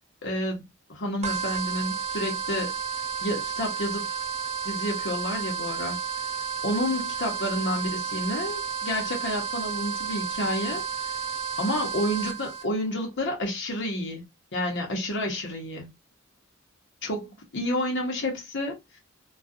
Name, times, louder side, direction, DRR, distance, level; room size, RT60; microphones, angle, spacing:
voice 1, 0.2-0.6 0.9-2.7 3.2-4.1 4.6-6.0 6.6-10.8 11.6-14.2 14.5-15.9 17.0-18.8, left 1 dB, 60° left, 0.8 m, -29 dB
sound 1, 1.2-12.6, right 6 dB, 35° right, 0.5 m, -32 dB
2.4 x 2.2 x 2.5 m
head